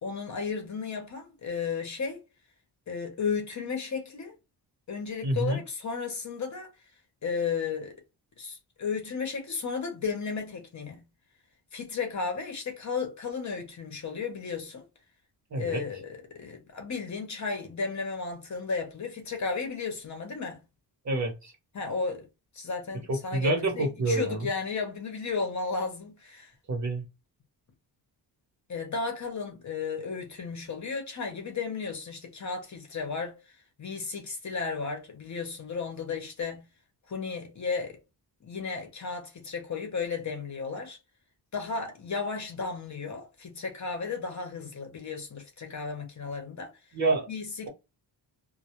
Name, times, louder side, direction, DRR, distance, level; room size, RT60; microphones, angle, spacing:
voice 1, 0.0-2.2 2.9-4.3 4.9-6.7 7.2-7.9 8.4-11.0 11.7-14.8 15.6-20.6 21.7-22.3 22.5-26.5 28.7-36.7 37.1-38.0 38.4-41.0 41.5-46.7 47.3-47.7, left 5 dB, 40° left, 0.7 m, -34 dB
voice 2, 5.2-5.6 15.5-15.8 21.0-21.5 23.1-24.5 26.7-27.0 46.9-47.3, right 2 dB, 40° right, 0.8 m, -27 dB
2.2 x 2.1 x 2.8 m
wide cardioid pair, 155°, 44 cm